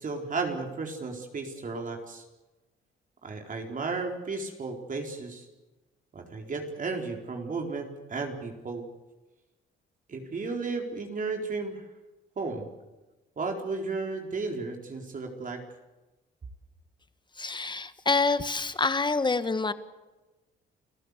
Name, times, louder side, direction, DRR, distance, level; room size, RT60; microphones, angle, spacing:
voice 1, 0.0-2.2 3.2-5.4 6.1-8.9 10.1-11.8 12.4-12.7 13.4-15.6, right 4 dB, 40° right, 2 dB, 4.2 m, -34 dB
voice 2, 17.4-19.7, left 3 dB, 25° left, 12 dB, 1.6 m, -27 dB
29.0 x 15.0 x 8.2 m, 1.1 s
cardioid pair, 90°, 20 cm